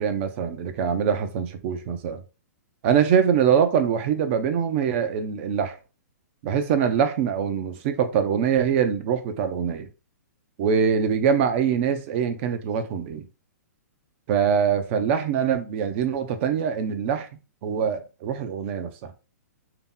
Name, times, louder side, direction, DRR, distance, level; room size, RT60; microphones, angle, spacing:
voice 1, 0.0-2.2 2.8-5.8 6.4-9.9 10.6-13.3 14.3-17.3 17.6-19.1, right 7 dB, 45° right, 0.7 m, -23 dB
3.4 x 2.9 x 3.8 m
hypercardioid pair, 120°, 9 cm